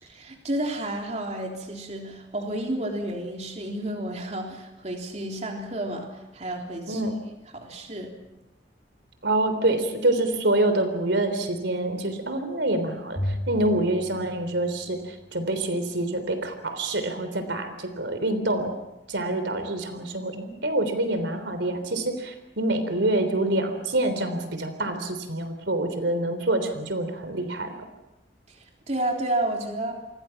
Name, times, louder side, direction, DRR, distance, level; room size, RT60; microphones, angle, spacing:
voice 1, 0.0-7.0 7.5-8.1 28.9-30.0, right 1 dB, 40° right, 1 dB, 3.6 m, -31 dB
voice 2, 9.2-18.8 19.1-27.7, right 1 dB, 85° right, 8 dB, 3.6 m, -26 dB
Bowed string instrument, 13.2-15.6, left 1 dB, 20° left, 6.6 m, -35 dB
29.5 x 24.0 x 5.9 m, 0.93 s
head